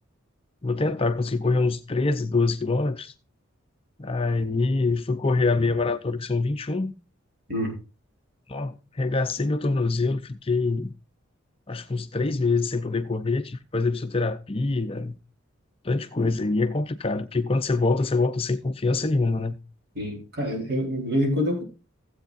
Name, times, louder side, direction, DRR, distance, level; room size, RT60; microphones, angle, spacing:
voice 1, 0.6-3.1 4.0-6.9 8.5-10.9 11.7-15.2 15.8-19.6, left 3 dB, 30° left, 0.6 m, -25 dB
voice 2, 19.9-21.6, equal, 50° right, 4.2 m, -26 dB
16.0 x 8.1 x 2.5 m
head